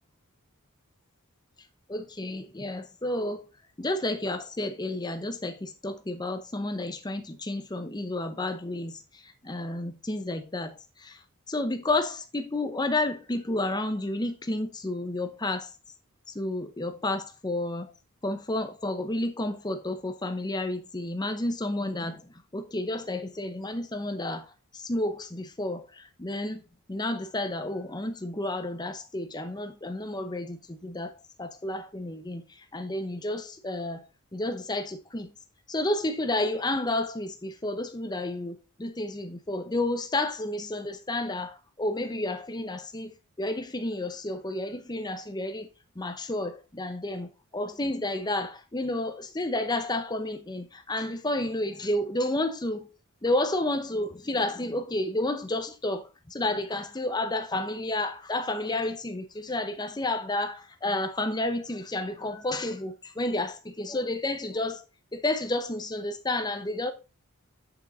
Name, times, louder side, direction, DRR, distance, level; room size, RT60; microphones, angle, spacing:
voice 1, 1.9-3.4 3.8-11.2 11.5-15.7 16.3-17.9 18.2-26.6 26.9-34.0 34.3-35.3 35.7-45.7 46.0-52.9 53.2-64.8 65.1-66.9, left 2 dB, 20° left, 0.8 m, -31 dB
7.3 x 6.0 x 4.0 m
head